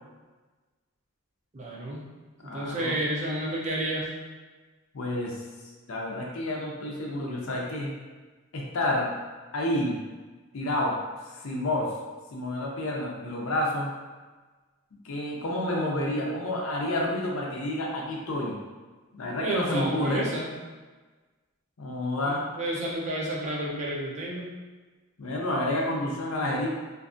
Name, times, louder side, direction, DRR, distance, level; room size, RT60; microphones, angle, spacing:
voice 1, 1.5-2.0 2.5-4.1 19.4-20.5 22.2-24.5, right 1 dB, 35° right, -4 dB, 0.5 m, -30 dB
voice 2, 2.4-3.0 4.9-5.4 5.9-7.9 8.5-9.1 9.5-10.0 10.5-11.0 11.4-11.9 12.3-13.9 15.0-18.6 19.1-20.3 21.8-22.4 25.2-26.7, left 1 dB, 75° left, -2 dB, 0.5 m, -29 dB
2.5 x 2.5 x 2.4 m, 1.3 s
head